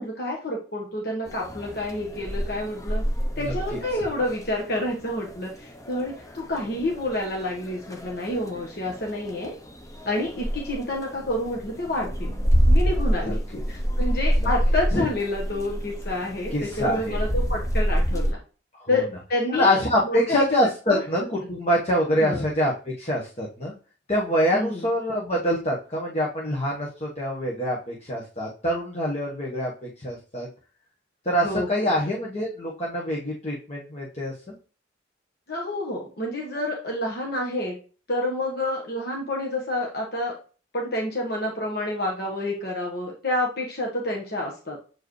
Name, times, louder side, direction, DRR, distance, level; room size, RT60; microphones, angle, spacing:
voice 1, 0.0-3.0 3.4-9.5 10.0-12.3 12.7-13.4 13.7-18.4 18.9-19.8 20.0-20.5 20.9-21.0 22.2-22.5 24.5-24.8 31.4-31.9 35.5-37.8 38.1-40.4 40.7-44.8, left 1 dB, 55° left, -1 dB, 1.4 m, -29 dB
sound 1, 1.3-18.3, equal, 15° left, 0.7 m, -27 dB
voice 2, 13.2-13.6 14.9-15.0 16.5-17.2 18.8-19.0 19.5-21.2 21.5-23.7 24.1-30.5 31.2-34.3, equal, 35° left, -3 dB, 1.3 m, -25 dB
8.0 x 4.7 x 3.2 m, 0.36 s
head